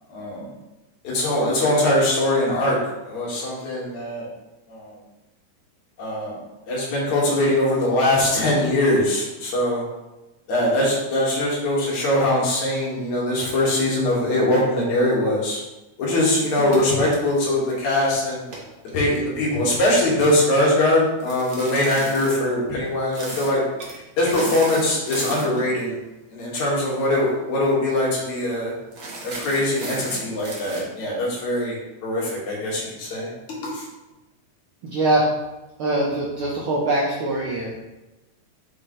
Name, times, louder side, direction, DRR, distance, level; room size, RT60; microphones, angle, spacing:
voice 1, 0.1-0.5 1.0-2.8 3.1-4.3 4.7-5.0 6.0-6.4 6.7-9.8 10.5-15.6 16.0-18.4 18.9-26.0 26.3-28.7 29.2-33.3 33.6-33.9, left 1 dB, 65° left, -5 dB, 3.2 m, -22 dB
sound 1, 16.3-17.9 18.4-19.9 21.2-22.4 23.1-23.5 23.8-24.0 24.3-25.7 27.0-27.2 27.5-27.6 27.9-28.3 28.9-30.8, right 2 dB, 50° right, 1.0 m, -35 dB
voice 2, 34.8-35.3 35.8-37.8, right 2 dB, 70° right, -4 dB, 1.3 m, -22 dB
7.0 x 6.3 x 3.2 m, 1.0 s
omnidirectional pair, 3.6 m